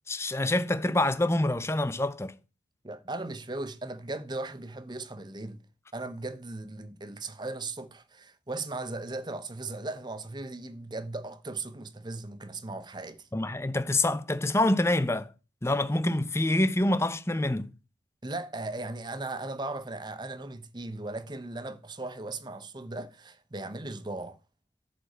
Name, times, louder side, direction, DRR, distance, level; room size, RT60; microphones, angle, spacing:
voice 1, 0.1-2.3 13.3-15.3 15.6-17.7, left 1 dB, 15° left, 0.7 m, -26 dB
voice 2, 2.8-5.6 5.9-13.3 18.2-24.4, right 2 dB, 25° right, 0.9 m, -37 dB
10.5 x 5.1 x 7.9 m
head